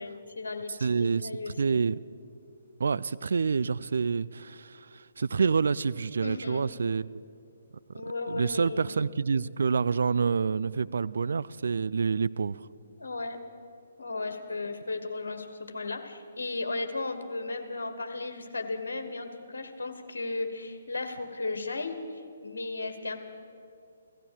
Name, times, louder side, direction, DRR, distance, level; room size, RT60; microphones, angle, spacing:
voice 1, 0.0-1.8 6.2-6.6 7.9-9.0 9.8-10.0 13.0-13.4 14.0-23.2, left 3 dB, 65° left, 7 dB, 1.6 m, -35 dB
voice 2, 0.8-2.0 2.8-7.1 8.3-12.7, right 5 dB, 60° right, 17 dB, 0.3 m, -28 dB
16.5 x 13.5 x 6.5 m, 2.4 s
figure-of-eight pair, 135°, 0 cm